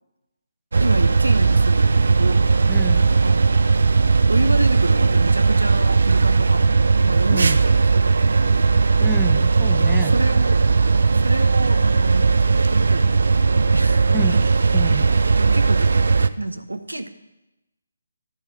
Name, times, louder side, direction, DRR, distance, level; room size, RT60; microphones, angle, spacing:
sound 1, 0.7-16.3, right 4 dB, 60° right, 0.4 m, -17 dB
voice 1, 0.8-2.7 3.2-3.7 4.0-8.4 9.8-10.6 11.1-14.4 15.3-16.1 16.4-17.1, right 1 dB, 85° right, 9 dB, 0.8 m, -29 dB
voice 2, 2.7-3.1 7.3-7.6 9.0-10.1 14.1-14.4 14.7-15.1, right 3 dB, ahead, 6 dB, 0.4 m, -30 dB
12.0 x 4.4 x 6.6 m, 0.95 s
figure-of-eight pair, 150°, 0 cm